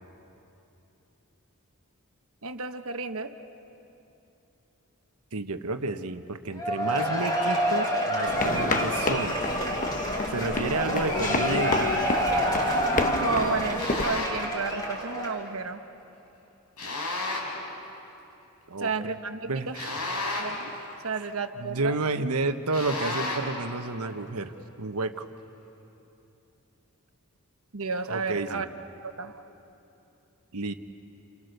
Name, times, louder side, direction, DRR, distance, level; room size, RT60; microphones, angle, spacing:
voice 1, 2.4-3.3 12.9-15.8 18.8-19.8 20.4-20.7 21.0-21.9 27.7-28.7 29.2-29.4, right 4 dB, 65° right, 7 dB, 1.2 m, -32 dB
voice 2, 5.3-9.4 10.3-12.7 18.7-19.1 19.4-19.9 21.1-21.2 21.6-24.5 24.8-25.3 28.1-28.7 30.5-30.7, right 3 dB, 90° right, 8 dB, 1.2 m, -31 dB
Cheering / Applause / Crowd, 6.6-15.5, equal, 20° left, 3.8 m, -28 dB
sound 1, 8.3-14.2, left 3 dB, 35° left, 1.1 m, -30 dB
sound 2, 13.8-14.5 16.8-17.6 19.7-20.7 22.7-23.6, left 2 dB, 85° left, 5.2 m, -32 dB
29.5 x 29.0 x 6.7 m, 3.0 s
head